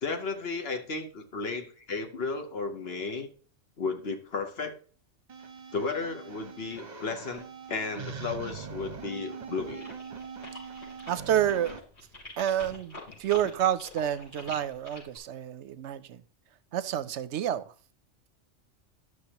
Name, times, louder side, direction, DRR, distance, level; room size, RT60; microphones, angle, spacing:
voice 1, 0.0-3.3 3.8-4.8 5.7-9.9, left 4 dB, 55° left, 1.2 m, -34 dB
sound 1, 5.3-11.8, right 6 dB, 40° right, 0.9 m, -42 dB
sound 2, 9.8-15.2, left 2 dB, 90° left, 3.9 m, -45 dB
voice 2, 11.1-11.8 12.4-16.2 16.7-17.7, right 11 dB, 70° right, 0.8 m, -29 dB
11.5 x 6.3 x 2.9 m
omnidirectional pair, 1.2 m